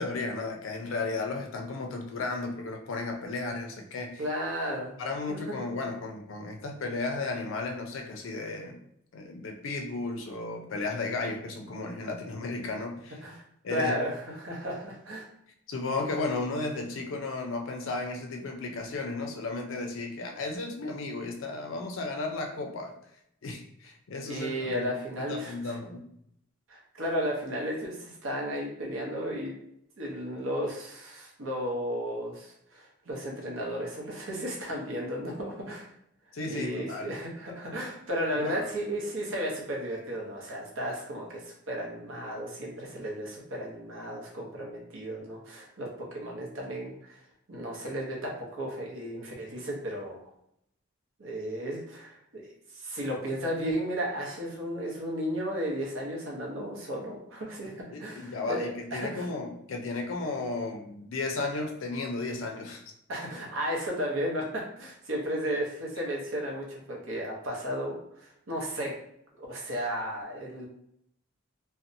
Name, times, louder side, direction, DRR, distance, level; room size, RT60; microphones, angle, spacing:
voice 1, 0.0-4.2 5.0-8.8 9.1-13.2 13.6-14.0 15.7-22.9 23.4-26.0 36.3-37.1 37.5-37.6 38.4-38.7 57.9-62.8, left 3 dB, 70° left, 3 dB, 0.4 m, -34 dB
voice 2, 4.2-4.9 13.2-13.4 13.7-15.3 24.2-25.7 26.7-29.5 30.0-35.9 36.4-47.2 47.5-50.3 51.2-52.5 52.7-59.3 63.1-68.9 69.4-70.7, equal, 70° right, -2 dB, 0.7 m, -34 dB
2.7 x 2.1 x 2.6 m, 0.73 s
head